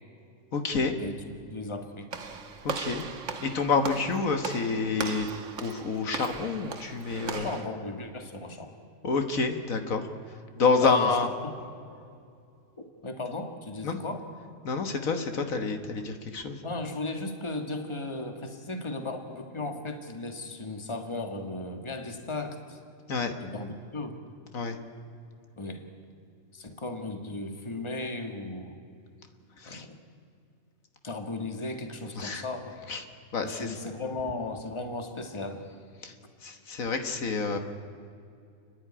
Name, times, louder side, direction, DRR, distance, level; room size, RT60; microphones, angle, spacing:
voice 1, 0.5-0.9 2.6-3.1 3.4-5.3 5.6-7.5 9.0-10.1 10.6-11.3 13.8-14.0 14.6-16.6 23.1-23.3 24.5-24.8 29.6-29.9 32.2-32.4 32.9-33.0 33.3-33.8 36.0-36.1 36.4-37.6, left 4 dB, 75° left, 6 dB, 1.8 m, -28 dB
voice 2, 1.5-2.1 7.3-8.7 10.8-11.2 13.0-14.2 16.6-22.8 23.4-24.2 25.6-25.8 26.5-28.8 29.6-30.0 31.0-32.8 33.4-35.6, left 2 dB, 20° left, 5 dB, 1.7 m, -36 dB
Walk footsteps / Slam, 2.1-7.7, right 6 dB, 65° right, 1.5 m, -38 dB
30.0 x 10.5 x 9.8 m, 2.4 s
omnidirectional pair, 1.4 m